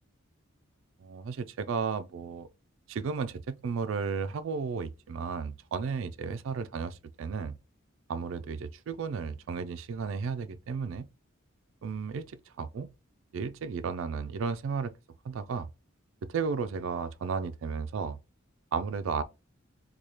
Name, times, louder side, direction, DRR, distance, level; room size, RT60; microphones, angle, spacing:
voice 1, 1.0-2.5 2.9-7.6 8.1-11.1 11.8-12.9 13.3-14.9 15.2-15.7 16.2-18.2 18.7-19.2, right 5 dB, 70° right, 0.3 m, -33 dB
4.8 x 2.3 x 2.8 m
head